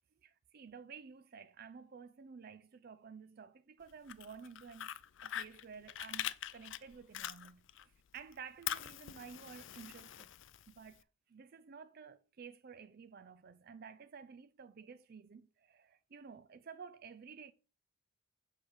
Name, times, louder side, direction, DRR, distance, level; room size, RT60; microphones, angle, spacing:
voice 1, 0.2-4.9 5.2-10.3 10.7-17.5, right 6 dB, 45° right, 0.4 m, -53 dB
Fire, 3.9-7.8 8.2-11.0, left 11 dB, 60° left, 0.4 m, -43 dB
7.3 x 5.0 x 6.3 m
head